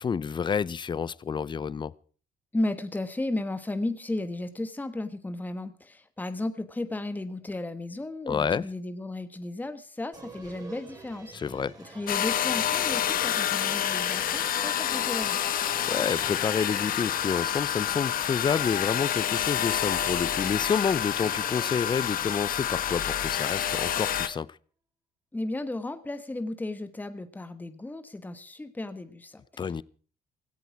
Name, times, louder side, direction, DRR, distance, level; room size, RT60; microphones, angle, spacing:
voice 1, 0.0-1.9 8.3-8.6 11.3-11.7 15.6-24.5 29.6-29.8, left 6 dB, 25° left, 0.6 m, -29 dB
voice 2, 2.5-11.4 11.8-15.4 25.3-29.8, left 2 dB, 10° left, 1.3 m, -34 dB
sound 1, 10.1-24.2, right 3 dB, 20° right, 4.5 m, -48 dB
sound 2, 12.1-24.3, left 10 dB, 55° left, 1.3 m, -28 dB
17.0 x 15.0 x 4.7 m
cardioid pair, 110°, 17 cm